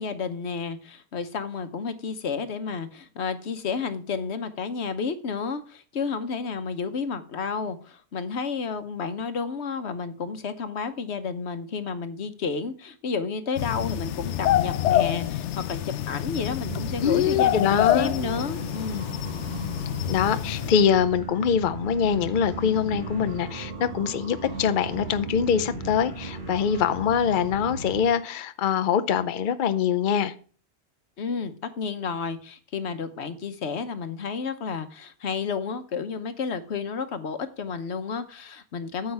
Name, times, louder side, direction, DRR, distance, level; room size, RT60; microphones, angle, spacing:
voice 1, 0.0-19.1 31.2-39.1, left 5 dB, 70° left, 1.2 m, -31 dB
sound 1, 13.6-20.7, left 12 dB, 90° left, 0.9 m, -27 dB
sound 2, 16.6-28.1, right 2 dB, 45° right, 2.0 m, -36 dB
voice 2, 17.0-18.2 20.1-30.3, left 7 dB, 50° left, 0.8 m, -24 dB
9.5 x 7.8 x 3.5 m
omnidirectional pair, 1.2 m